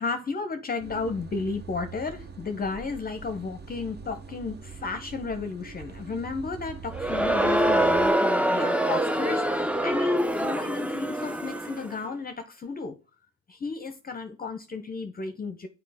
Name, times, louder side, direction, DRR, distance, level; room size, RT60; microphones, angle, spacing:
voice 1, 0.0-12.9 13.5-15.7, left 4 dB, 30° left, 0.7 m, -33 dB
sound 1, 0.8-8.1, right 5 dB, 35° right, 0.7 m, -43 dB
Crowd, 6.9-11.9, right 1 dB, 5° right, 0.4 m, -25 dB
7.4 x 4.5 x 3.4 m
cardioid pair, 90°, 30 cm